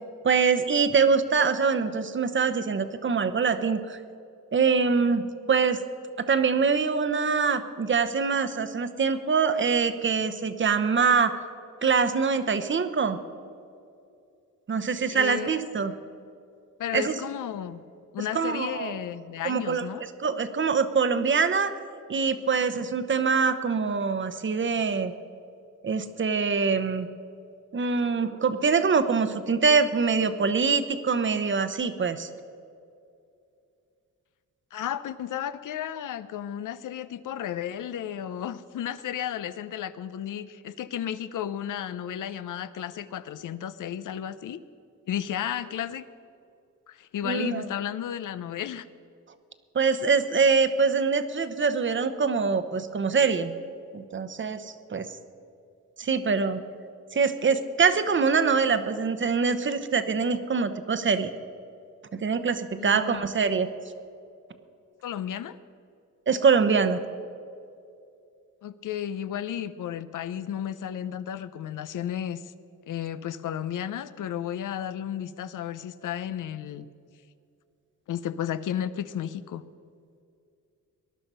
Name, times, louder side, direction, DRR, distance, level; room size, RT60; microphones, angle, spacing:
voice 1, 0.2-4.0 4.5-5.8 6.2-11.4 11.8-13.2 14.7-15.9 16.9-17.2 18.3-19.0 19.4-21.7 22.1-25.1 25.8-27.1 27.7-32.3 47.2-47.7 49.7-53.5 53.9-55.1 56.0-56.6 57.1-61.3 62.1-63.7 66.3-67.0, right 5 dB, 40° right, 11 dB, 0.9 m, -24 dB
voice 2, 15.1-15.6 16.8-17.8 18.1-20.0 34.7-44.6 45.1-46.0 46.9-48.9 62.7-63.2 65.0-65.6 68.6-72.5 72.9-76.9 78.1-79.6, left 10 dB, 75° left, 14 dB, 0.7 m, -33 dB
19.0 x 11.5 x 5.5 m, 2.5 s
cardioid pair, 115°, 32 cm